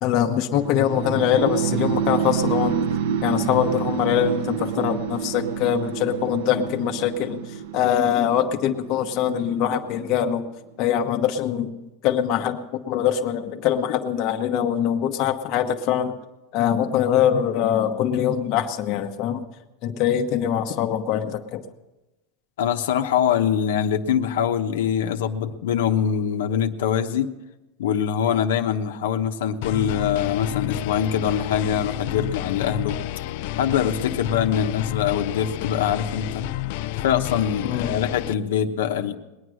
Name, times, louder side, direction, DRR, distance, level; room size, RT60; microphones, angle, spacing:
voice 1, 0.0-2.8 3.2-7.4 7.7-10.4 10.8-11.7 12.0-16.1 16.5-19.4 19.8-21.6 37.6-38.0, left 9 dB, 40° left, 4 dB, 1.1 m, -23 dB
sound 1, 0.5-10.5, right 8 dB, 65° right, 0.9 m, -28 dB
voice 2, 22.6-27.3 27.8-33.0 33.6-36.5 37.0-39.2, left 8 dB, 85° left, 6 dB, 1.1 m, -23 dB
sound 2, 29.6-38.3, left 14 dB, 55° left, 0.5 m, -30 dB
20.0 x 9.6 x 6.4 m, 1.0 s
supercardioid pair, 165°, 0 cm